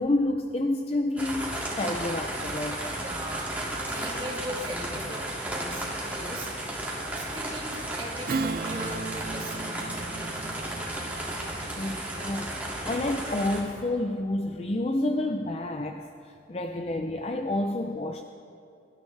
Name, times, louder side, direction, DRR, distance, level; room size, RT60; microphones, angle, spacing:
voice 1, 0.0-2.9 11.6-12.5 12.8-18.2, left 1 dB, 30° left, 5 dB, 0.5 m, -29 dB
sound 1, 1.2-13.6, right 1 dB, 10° right, 2.1 m, -34 dB
voice 2, 2.9-6.5 7.1-7.7 8.0-10.5 16.5-16.8, right 1 dB, 25° right, -3 dB, 2.3 m, -40 dB
Strum, 8.3-13.2, right 4 dB, 50° right, 0.4 m, -36 dB
23.5 x 12.5 x 3.3 m, 2.6 s
head